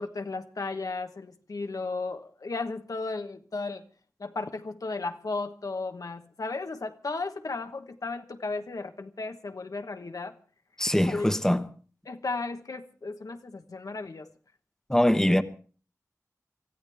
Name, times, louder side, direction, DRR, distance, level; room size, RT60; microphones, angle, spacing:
voice 1, 0.0-3.9 4.2-10.4 10.9-11.2 12.1-14.3, left 3 dB, 75° left, 1.2 m, -35 dB
voice 2, 10.8-11.6 14.9-15.4, left 1 dB, 10° left, 1.1 m, -22 dB
24.5 x 14.5 x 3.5 m
wide cardioid pair, 65°, 6 cm